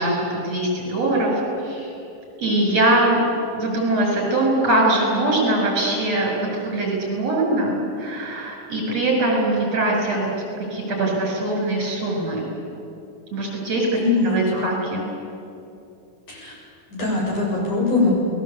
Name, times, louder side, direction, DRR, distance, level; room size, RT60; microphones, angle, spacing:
voice 1, 0.0-1.9 2.4-3.2 3.5-10.3 10.6-12.5 13.3-14.0 14.2-15.1, right 2 dB, 55° right, -1 dB, 8.2 m, -22 dB
voice 2, 14.0-14.7 16.3-16.5 16.9-18.1, left 3 dB, 70° left, -3 dB, 8.9 m, -22 dB
29.0 x 20.5 x 8.5 m, 2.7 s
omnidirectional pair, 3.6 m